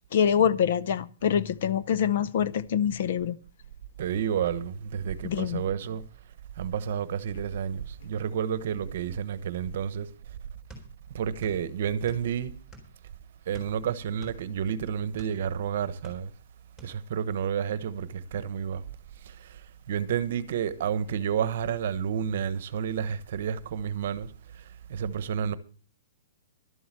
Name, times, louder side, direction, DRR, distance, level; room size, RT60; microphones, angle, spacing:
voice 1, 0.1-3.4 5.2-5.6, left 8 dB, 45° left, 0.6 m, -25 dB
voice 2, 4.0-6.0 6.6-10.1 11.1-12.5 13.5-16.3 16.8-18.8 19.2-25.5, right 8 dB, 45° right, 1.0 m, -30 dB
sound 1, 10.7-11.6 11.9-13.0 13.5-15.4 15.8-16.5 16.8-17.0, right 1 dB, 10° left, 4.0 m, -48 dB
12.5 x 7.9 x 7.6 m
hypercardioid pair, 175°, 0 cm